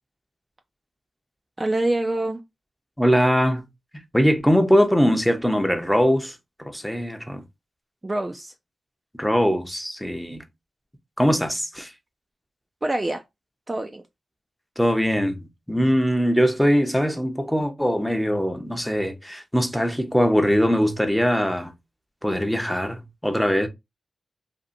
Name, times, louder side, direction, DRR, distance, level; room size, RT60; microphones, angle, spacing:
voice 1, 1.6-2.4 8.0-8.5 12.8-13.2 13.7-14.0, right 2 dB, 30° right, 0.3 m, -25 dB
voice 2, 3.0-3.6 4.1-7.4 9.2-10.4 11.2-11.9 14.8-21.7 22.2-23.7, equal, 5° left, 0.6 m, -21 dB
2.7 x 2.4 x 2.5 m
cardioid pair, 45°, 0 cm